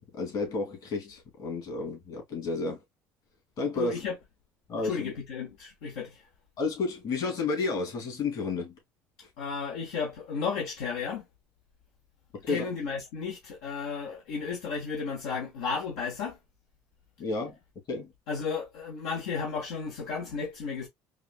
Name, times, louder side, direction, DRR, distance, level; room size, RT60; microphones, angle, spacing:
voice 1, 0.1-2.8 3.6-4.0 4.7-5.1 6.6-8.7 12.4-12.7 17.2-17.6 17.9-18.1, left 3 dB, 55° left, 2.5 m, -31 dB
voice 2, 3.8-4.1 4.8-6.2 9.4-11.2 12.5-16.4 18.3-20.9, left 5 dB, 80° left, 1.2 m, -33 dB
4.8 x 2.4 x 2.2 m
supercardioid pair, 80°, 8 cm